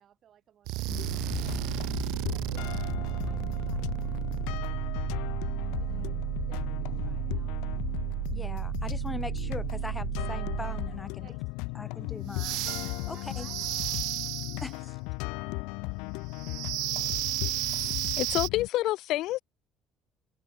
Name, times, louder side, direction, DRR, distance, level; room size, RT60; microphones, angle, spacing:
voice 1, 0.0-7.6 11.2-12.0 13.1-14.0 14.5-14.8 15.4-16.3, right 10 dB, 50° right, 6.4 m, -61 dB
sound 1, 0.6-11.1 12.3-14.7 16.3-18.5, right 21 dB, 80° right, 1.2 m, -33 dB
sound 2, 0.9-18.7, left 29 dB, 90° left, 1.7 m, -36 dB
voice 2, 8.3-11.3 11.7-13.5 14.6-15.0, left 2 dB, 15° left, 0.8 m, -41 dB
voice 3, 18.2-19.4, left 16 dB, 70° left, 0.7 m, -28 dB
open air
cardioid pair, 115°, 0 cm